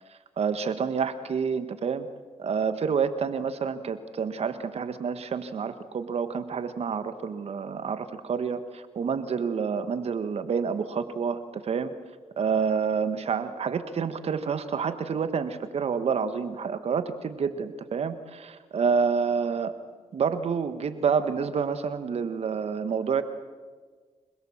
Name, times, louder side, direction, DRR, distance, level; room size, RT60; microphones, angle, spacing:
voice 1, 0.4-2.1 2.4-11.9 12.4-19.7 20.1-23.2, right 6 dB, 65° right, 11 dB, 1.6 m, -28 dB
26.5 x 21.5 x 7.4 m, 1.5 s
cardioid pair, 75°, 11 cm